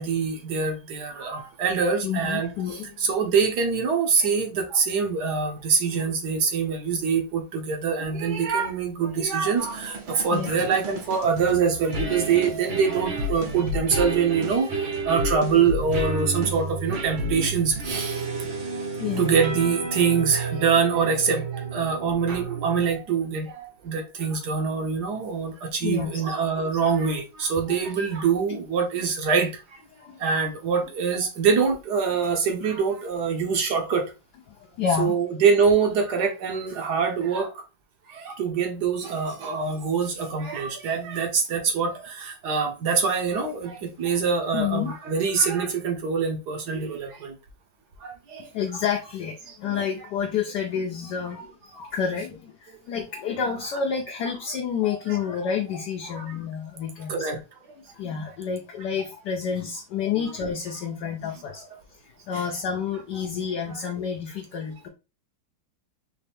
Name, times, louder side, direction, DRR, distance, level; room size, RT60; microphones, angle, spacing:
voice 1, 0.0-2.5 3.0-14.7 15.0-18.2 19.2-21.4 21.7-29.5 30.2-34.0 34.9-37.5 38.2-47.3 48.0-48.4 48.7-48.8 55.1-55.2 57.1-57.4 60.1-60.3 62.3-62.4, right 5 dB, 60° right, 1.3 m, -24 dB
voice 2, 2.0-2.9 10.3-10.7 19.0-19.4 25.8-26.7 30.0-30.2 34.5-35.1 44.5-44.9 48.5-57.3 57.8-62.0 62.2-64.9, left 7 dB, 65° left, 1.2 m, -29 dB
sound 1, 9.6-23.1, right 2 dB, 75° right, 2.1 m, -31 dB
4.3 x 3.2 x 3.4 m
omnidirectional pair, 2.2 m